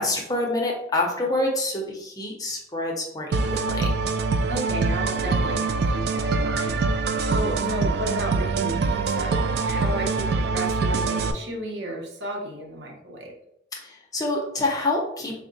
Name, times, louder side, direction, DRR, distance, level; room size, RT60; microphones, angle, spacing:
voice 1, 0.0-3.9 13.8-15.4, left 2 dB, 20° left, -1 dB, 0.6 m, -27 dB
sound 1, 3.3-11.3, right 4 dB, 65° right, 0.3 m, -24 dB
voice 2, 4.5-13.3, right 1 dB, 85° right, 1 dB, 0.8 m, -33 dB
3.5 x 2.1 x 3.9 m, 0.74 s
head